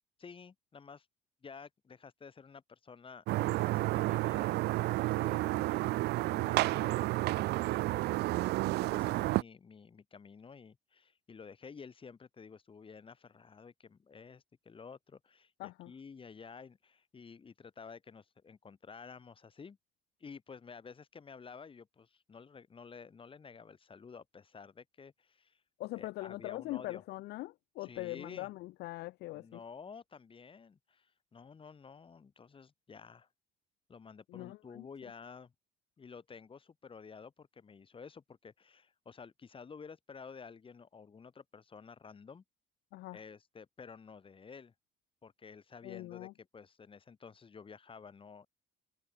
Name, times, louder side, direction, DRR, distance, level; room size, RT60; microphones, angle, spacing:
voice 1, 0.2-1.1 1.4-4.6 5.0-5.9 6.2-8.2 8.8-19.8 20.2-25.6 26.0-27.0 27.8-28.5 29.3-33.3 33.9-35.5 36.0-42.4 43.1-44.7 45.2-48.5, left 5 dB, 30° left, 8.0 m, -52 dB
sound 1, 3.3-9.4, right 19 dB, 75° right, 0.5 m, -31 dB
voice 2, 15.6-15.9 25.8-29.6 34.3-34.9 42.9-43.2 45.8-46.3, left 18 dB, 80° left, 0.7 m, -42 dB
cardioid pair, 110°, 17 cm